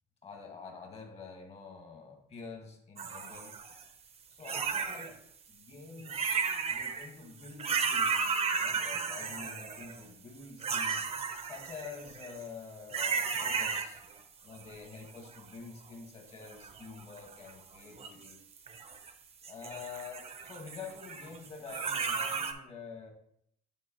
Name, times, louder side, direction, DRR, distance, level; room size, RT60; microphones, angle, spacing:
voice 1, 0.2-3.5 4.3-5.2 5.5-6.4 6.7-11.1 11.4-14.0 14.4-18.4 19.5-23.1, left 5 dB, 40° left, 3 dB, 1.6 m, -47 dB
sound 1, 3.0-3.8 4.4-5.1 6.0-7.1 7.4-10.0 10.6-12.4 12.9-14.2 14.5-15.6 16.4-17.5 18.0-19.1 19.4-22.5, right 5 dB, 40° right, 0.8 m, -34 dB
9.3 x 4.1 x 3.0 m, 0.71 s
cardioid pair, 110°, 17 cm